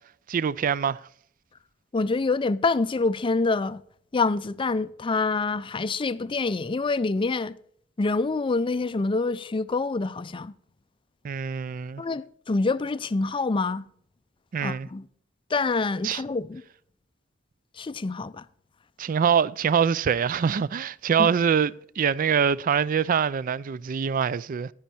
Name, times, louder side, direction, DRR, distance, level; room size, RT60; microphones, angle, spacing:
voice 1, 0.3-1.0 11.2-12.0 14.5-14.9 16.0-16.2 19.0-24.7, right 7 dB, 45° right, 0.4 m, -24 dB
voice 2, 1.9-3.8 4.1-7.5 8.0-10.5 12.0-13.8 14.6-15.0 15.5-16.6 17.8-18.4 21.2-21.3, left 3 dB, 25° left, 0.4 m, -26 dB
10.5 x 9.9 x 4.3 m
head